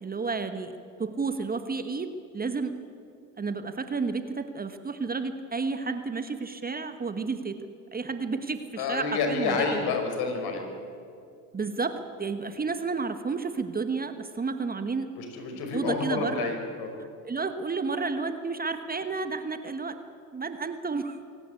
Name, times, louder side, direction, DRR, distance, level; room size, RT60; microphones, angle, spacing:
voice 1, 0.0-2.8 3.4-9.9 11.5-15.1 15.7-16.5 17.0-20.0 20.3-21.2, right 4 dB, 20° right, 9 dB, 1.3 m, -31 dB
voice 2, 8.8-10.6 12.5-12.6 15.2-16.9, left 4 dB, 55° left, 4 dB, 5.2 m, -29 dB
24.5 x 17.5 x 8.5 m, 2.4 s
hypercardioid pair, 75°, 45 cm